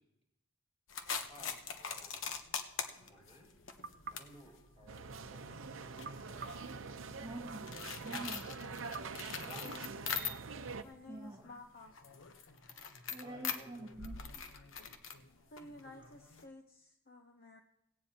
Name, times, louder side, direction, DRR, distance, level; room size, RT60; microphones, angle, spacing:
sound 1, 0.9-10.7 11.0-16.4, left 6 dB, 85° left, 1.0 m, -44 dB
voice 1, 1.3-2.4 3.1-3.5 4.1-5.7 9.4-9.8 13.1-14.0, right 1 dB, 35° left, -1 dB, 5.7 m, -57 dB
sound 2, 3.8-5.4 6.0-7.6 8.9-10.3, right 5 dB, 55° right, 0.6 m, -52 dB
sound 3, 4.9-10.8, right 4 dB, 90° right, 0.7 m, -45 dB
voice 2, 7.2-7.7 8.0-8.5 11.1-11.5 13.1-14.4, right 2 dB, 25° right, -1 dB, 1.8 m, -46 dB
voice 3, 10.8-12.0 15.5-17.6, left 2 dB, 50° left, 4 dB, 0.8 m, -53 dB
17.0 x 16.5 x 2.9 m, 0.79 s
head